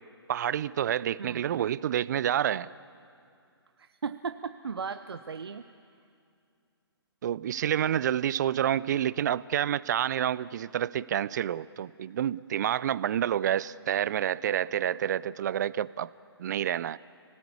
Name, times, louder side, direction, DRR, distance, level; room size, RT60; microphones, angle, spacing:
voice 1, 0.3-2.7 7.2-16.1 16.4-17.0, right 10 dB, 45° right, 0.6 m, -28 dB
voice 2, 3.8-5.6, right 6 dB, 65° right, 0.9 m, -36 dB
29.5 x 18.5 x 8.5 m
figure-of-eight pair, 130°, 14 cm